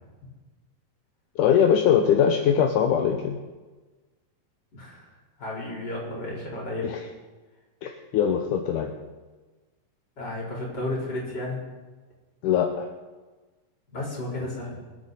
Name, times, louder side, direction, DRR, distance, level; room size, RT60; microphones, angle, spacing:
voice 1, 1.4-3.4 6.8-7.0 7.8-8.9 12.4-12.9, left 8 dB, 75° left, 4 dB, 2.3 m, -22 dB
voice 2, 5.4-6.9 10.2-11.6 13.9-14.8, left 2 dB, 30° left, -4 dB, 4.7 m, -32 dB
26.0 x 8.9 x 4.1 m, 1.3 s
omnidirectional pair, 3.9 m